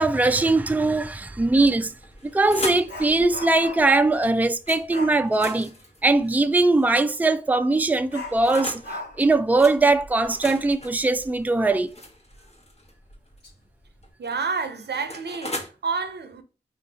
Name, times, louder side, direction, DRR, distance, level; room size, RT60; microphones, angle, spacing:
voice 1, 0.0-1.9 2.3-5.7 6.0-8.8 9.2-11.9, right 2 dB, 10° right, 0.4 m, -21 dB
Dog, 1.7-1.8 2.1-4.0 4.9-5.3 7.2-7.4 8.1-11.4 11.7-11.8 12.3-12.4 13.1-13.5 13.9-14.1, left 1 dB, 90° left, 2.2 m, -39 dB
sound 1, 2.0-3.0 4.7-4.8 5.2-7.1 7.9-8.9 9.6-9.8 10.2-12.9 14.0-15.7, left 1 dB, 40° left, 1.1 m, -37 dB
voice 2, 14.2-16.4, right 5 dB, 80° right, 0.6 m, -29 dB
3.5 x 2.7 x 4.0 m
cardioid pair, 40°, 17 cm